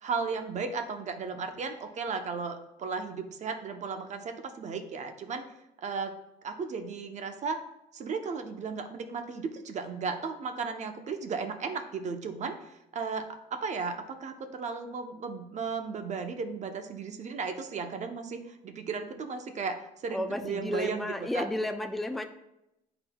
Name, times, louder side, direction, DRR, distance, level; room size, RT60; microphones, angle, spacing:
voice 1, 0.0-5.4 5.8-6.1 6.4-7.6 7.9-21.5, right 5 dB, 45° right, 6 dB, 0.8 m, -35 dB
voice 2, 20.1-22.2, left 1 dB, ahead, 6 dB, 0.4 m, -32 dB
11.0 x 3.9 x 2.3 m, 0.87 s
cardioid pair, 110°, 17 cm